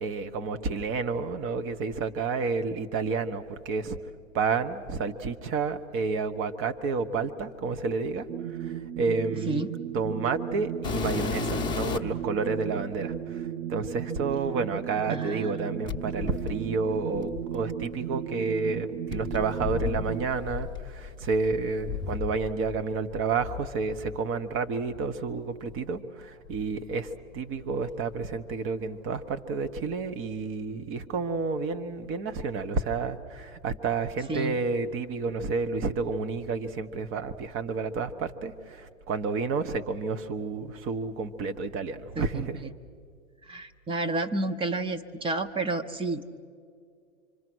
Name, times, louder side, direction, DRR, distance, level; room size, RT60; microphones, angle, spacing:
voice 1, 0.0-4.0 4.3-9.6 9.9-42.6, right 4 dB, 30° right, 9 dB, 1.3 m, -30 dB
sound 1, 8.3-20.2, right 10 dB, 75° right, 1.2 m, -35 dB
voice 2, 9.3-9.7 15.1-15.6 34.3-34.6 42.2-42.7 43.4-46.3, right 2 dB, 15° right, 7 dB, 0.9 m, -31 dB
sound 2, 10.8-12.2 13.1-13.2 15.8-17.9 19.1-22.8 23.1-24.2 24.9-25.1 25.7-25.8 26.5-27.6 27.8-28.3 29.6-29.7, left 7 dB, 10° left, 1.1 m, -35 dB
26.0 x 25.5 x 6.3 m, 2.2 s
hypercardioid pair, 120°, 40 cm